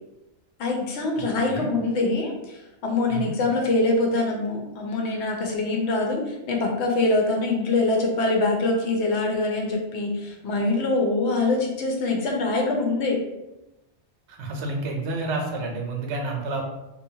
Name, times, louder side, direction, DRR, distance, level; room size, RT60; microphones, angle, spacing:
voice 1, 0.6-13.2, left 2 dB, 75° left, 0 dB, 0.9 m, -24 dB
voice 2, 1.1-1.7 3.1-3.3 14.3-16.6, right 3 dB, 75° right, 2 dB, 0.9 m, -30 dB
2.7 x 2.1 x 2.7 m, 0.95 s
omnidirectional pair, 1.2 m